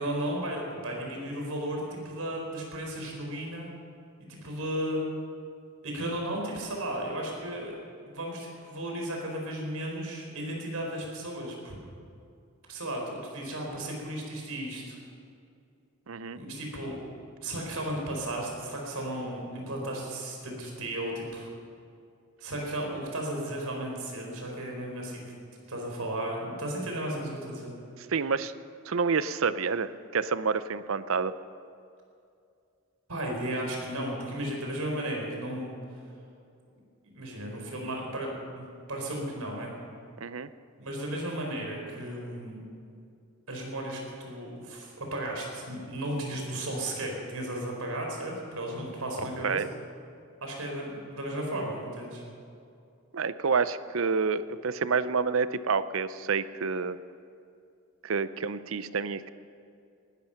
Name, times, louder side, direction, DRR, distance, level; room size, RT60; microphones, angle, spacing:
voice 1, 0.0-3.7 4.3-5.0 5.8-7.8 8.1-11.8 12.7-15.0 16.3-17.0 17.4-21.5 22.4-25.3 25.7-27.7 33.1-35.7 37.0-39.7 40.8-42.7 43.5-49.6 50.4-52.2, right 1 dB, 85° right, 0 dB, 4.4 m, -34 dB
voice 2, 16.1-16.4 28.1-28.5 28.9-31.3 40.2-40.5 49.4-49.7 53.1-57.0 58.0-59.3, right 5 dB, 70° right, 14 dB, 0.6 m, -28 dB
19.5 x 12.5 x 5.8 m, 2.5 s
head